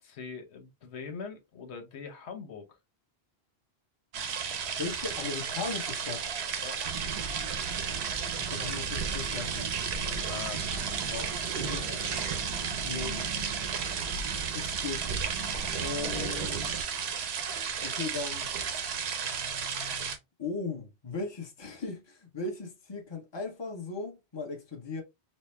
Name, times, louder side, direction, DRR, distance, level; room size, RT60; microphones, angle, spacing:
voice 1, 0.0-2.7 6.6-6.8 10.0-12.0, left 5 dB, 85° left, 1.1 m, -43 dB
sound 1, 4.1-20.2, right 6 dB, 80° right, 0.9 m, -34 dB
voice 2, 4.8-6.2 8.4-9.7 11.5-11.8 12.6-13.4 14.5-15.1 15.3-15.5 15.8-16.8 17.8-18.5 20.4-25.0, left 4 dB, 25° left, 0.9 m, -37 dB
sound 2, 6.8-16.8, right 5 dB, 50° right, 0.5 m, -38 dB
4.2 x 2.0 x 3.2 m
omnidirectional pair, 1.1 m